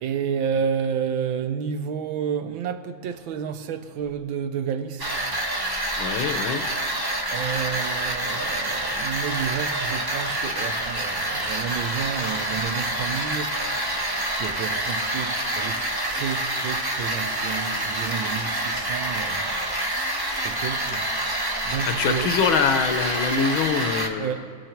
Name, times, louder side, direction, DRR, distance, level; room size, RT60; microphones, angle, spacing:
voice 1, 0.0-5.3 7.3-13.6 14.3-19.6 20.4-21.1 21.6-22.4 24.2-24.5, right 7 dB, 75° right, 1.5 m, -30 dB
sound 1, 5.0-24.1, right 1 dB, 20° right, 0.7 m, -27 dB
voice 2, 6.0-6.6 22.0-24.3, left 6 dB, 80° left, 1.7 m, -24 dB
24.0 x 8.5 x 4.5 m
omnidirectional pair, 2.2 m